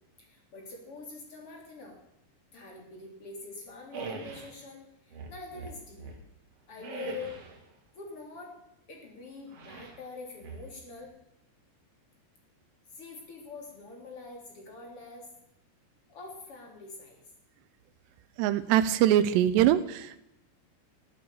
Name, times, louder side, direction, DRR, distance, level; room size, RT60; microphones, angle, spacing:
voice 1, 0.2-2.0 2.5-6.2 6.7-7.6 7.9-8.6 8.9-11.1 12.9-15.3 16.1-17.2, left 4 dB, 35° left, 1 dB, 3.6 m, -45 dB
sound 1, 3.9-4.6 5.1-6.3 6.8-7.6 9.5-10.0 10.4-11.1, right 4 dB, 45° right, 2.2 m, -42 dB
voice 2, 18.4-20.2, right 11 dB, 85° right, 14 dB, 2.8 m, -23 dB
13.5 x 8.6 x 6.8 m, 0.83 s
omnidirectional pair, 5.0 m